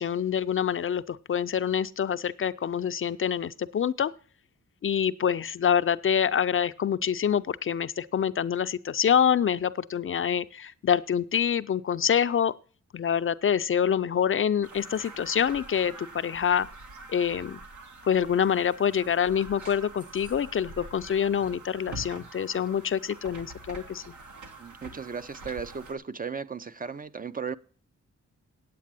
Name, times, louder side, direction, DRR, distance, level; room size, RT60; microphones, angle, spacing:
voice 1, 0.0-4.1 4.8-12.5 12.9-16.7 17.1-17.6 18.0-24.0, left 8 dB, 45° left, 0.4 m, -26 dB
sound 1, 14.6-25.9, right 2 dB, 85° right, 1.8 m, -45 dB
voice 2, 24.6-27.5, right 5 dB, 30° right, 0.4 m, -36 dB
8.6 x 8.5 x 7.5 m
wide cardioid pair, 130°, 29 cm